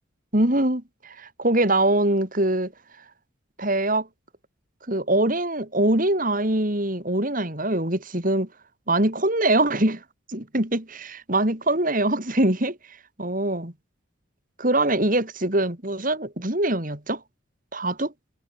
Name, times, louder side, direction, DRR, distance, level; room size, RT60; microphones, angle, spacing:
voice 1, 0.3-2.7 3.6-4.1 4.9-8.5 8.9-10.0 10.3-12.8 13.2-13.7 14.6-17.2 17.7-18.1, right 1 dB, 40° right, 3.2 m, -23 dB
head